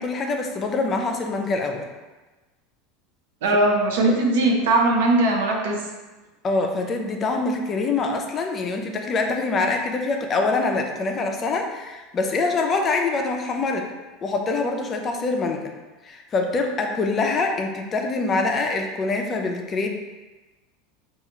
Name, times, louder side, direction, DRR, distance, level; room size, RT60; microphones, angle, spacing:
voice 1, 0.0-1.9 6.4-13.9 14.2-15.7 16.0-19.9, left 3 dB, 30° left, 3 dB, 0.4 m, -24 dB
voice 2, 3.4-5.8, right 2 dB, 80° right, 0 dB, 0.7 m, -19 dB
4.3 x 2.4 x 2.9 m, 1.2 s
supercardioid pair, 120°, 0 cm